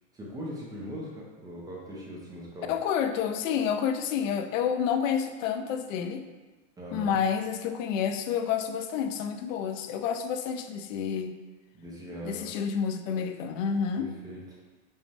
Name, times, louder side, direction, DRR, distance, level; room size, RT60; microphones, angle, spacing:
voice 1, 0.1-2.7 6.8-7.2 11.7-12.5 13.9-14.4, equal, 10° right, -5 dB, 0.4 m, -40 dB
voice 2, 2.7-6.3 6.9-11.3 12.2-14.1, left 7 dB, 80° left, 8 dB, 0.5 m, -29 dB
5.2 x 2.2 x 3.3 m, 1.2 s
supercardioid pair, 145°, 38 cm